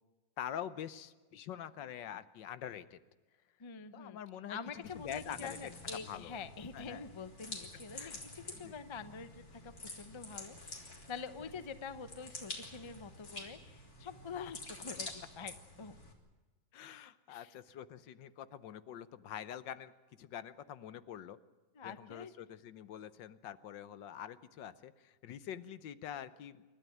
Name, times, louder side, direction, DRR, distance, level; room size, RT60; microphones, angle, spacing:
voice 1, 0.4-3.0 3.9-5.6 6.0-6.4 6.7-7.0 8.0-8.2 8.5-8.7 14.4-14.5 16.7-19.9 20.2-21.4 21.8-26.6, left 10 dB, 75° left, 14 dB, 1.5 m, -45 dB
voice 2, 3.6-4.2 4.5-15.1 15.3-15.9 17.3-17.5 21.7-22.3, left 5 dB, 25° left, 11 dB, 0.6 m, -46 dB
sound 1, 4.8-16.1, left 2 dB, 50° left, 3.6 m, -48 dB
29.0 x 13.0 x 9.3 m, 1.3 s
omnidirectional pair, 2.0 m